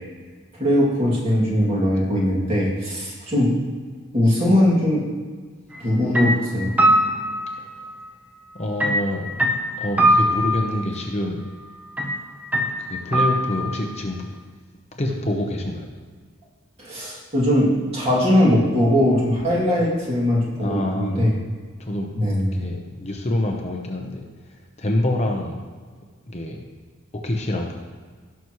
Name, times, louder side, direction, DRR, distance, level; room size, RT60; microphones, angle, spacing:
voice 1, 0.6-3.6 4.1-5.1 5.8-6.7 16.8-21.3 22.1-22.6, left 1 dB, 30° right, -5 dB, 2.5 m, -20 dB
sound 1, 5.7-5.9 6.1-8.0 8.8-10.8 12.0-12.1 12.5-13.8, equal, 5° right, 0.9 m, -21 dB
voice 2, 8.6-9.4 9.8-11.5 12.9-14.3 15.0-15.9 20.6-21.4 21.8-24.3 24.8-25.5 26.3-26.6 27.2-27.7, left 1 dB, 30° left, 1 dB, 0.9 m, -26 dB
17.5 x 6.1 x 3.1 m, 1.5 s
head